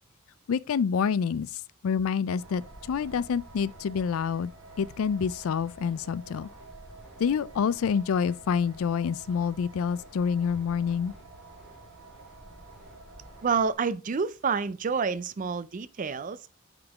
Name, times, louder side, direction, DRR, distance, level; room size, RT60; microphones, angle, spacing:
voice 1, 0.5-1.5 1.8-4.5 4.8-6.5 7.2-11.1, left 6 dB, 85° left, 0.4 m, -27 dB
sound 1, 2.4-13.7, equal, ahead, 2.1 m, -52 dB
sound 2, 2.4-13.5, right 4 dB, 85° right, 1.1 m, -50 dB
voice 2, 13.4-16.5, right 5 dB, 40° right, 0.4 m, -28 dB
7.9 x 3.8 x 3.5 m
head